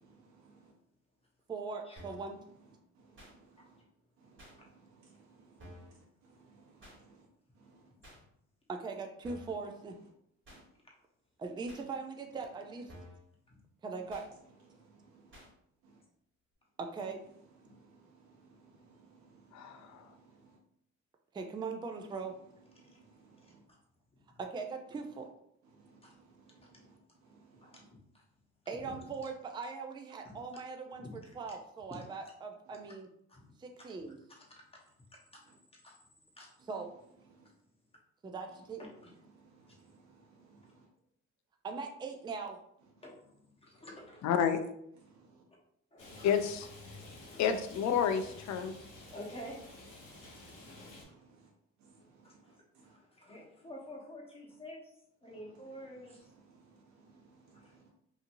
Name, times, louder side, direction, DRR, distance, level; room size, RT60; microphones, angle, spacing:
voice 1, 1.5-2.4 8.7-10.0 11.4-12.9 13.8-14.2 16.8-17.2 21.3-22.3 24.4-25.3 28.7-31.0 31.4-33.1 33.6-34.2 36.7-36.9 38.2-38.8 41.6-42.6, right 4 dB, 15° right, 4 dB, 0.3 m, -40 dB
sound 1, 2.0-2.3 3.2-3.3 4.4-4.5 5.6-5.9 6.8-7.0 8.0-8.2 9.2-9.6 10.4-10.6 11.7-11.8 12.9-13.2 14.1-14.3 15.3-15.5, equal, 40° right, 1.3 m, -52 dB
voice 2, 18.4-19.8 20.1-20.2 23.3-23.4 27.4-27.5 39.5-40.0 46.1-46.2 50.8-50.9 51.2-51.3 51.8-52.2 52.8-52.9 56.6-56.7 57.4-57.9, right 4 dB, 65° right, -2 dB, 0.9 m, -62 dB
voice 3, 19.5-20.1 44.2-44.6 46.2-46.7 47.4-48.7, left 8 dB, 65° left, 8 dB, 0.4 m, -30 dB
voice 4, 23.4-23.8 24.2-24.4 26.0-26.1 26.7-26.8 27.6-28.2 28.8-29.1 30.2-30.4 31.0-31.4 31.9-32.0 33.3-33.4 33.8-34.9 35.3-35.4 35.7-36.0 36.3-36.5 39.0-39.1 39.7-39.8 40.6-40.7 43.0-44.5 45.9-46.5 47.2-47.6 49.0-49.6 49.9-50.1 50.5-51.1 52.2-54.9 55.2-56.3 57.5-57.8, left 1 dB, 20° left, -2 dB, 0.9 m, -51 dB
Rain, 46.0-51.0, left 2 dB, 85° left, 1.2 m, -51 dB
2.8 x 2.6 x 2.6 m, 0.73 s
cardioid pair, 90°, 30 cm